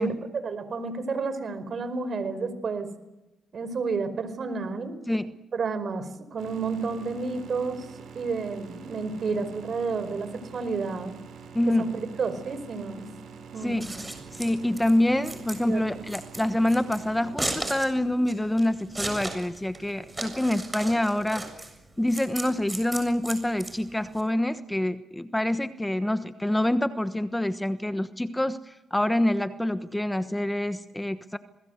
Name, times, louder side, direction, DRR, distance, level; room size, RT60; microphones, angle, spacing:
voice 1, 0.0-2.9 3.5-5.0 5.5-7.9 8.1-11.2 11.7-13.0 13.5-13.9 15.7-16.0, right 4 dB, 50° right, 12 dB, 5.0 m, -31 dB
sound 1, 6.4-21.0, right 6 dB, 65° right, 6.4 m, -47 dB
voice 2, 11.5-11.9 13.6-13.9 14.3-21.4 22.0-31.4, left 1 dB, 5° left, 11 dB, 1.2 m, -26 dB
Scissors, 13.6-24.2, right 2 dB, 15° right, 7.2 m, -36 dB
27.5 x 21.0 x 8.1 m, 0.96 s
cardioid pair, 90°, 0 cm